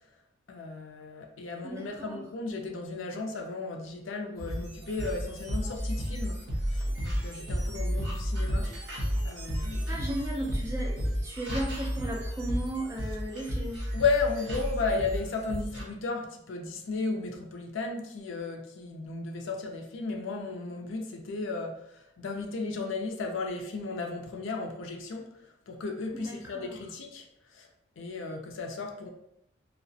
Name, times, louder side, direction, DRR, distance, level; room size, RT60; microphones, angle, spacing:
voice 1, 0.5-10.0 13.9-25.2 25.7-27.7 28.0-29.1, left 4 dB, 75° left, 0.4 m, -34 dB
voice 2, 1.6-2.2 9.6-13.8 26.1-26.8, right 1 dB, 15° right, 0.4 m, -36 dB
sound 1, 4.4-15.8, equal, 55° right, 0.9 m, -32 dB
2.3 x 2.0 x 2.6 m
head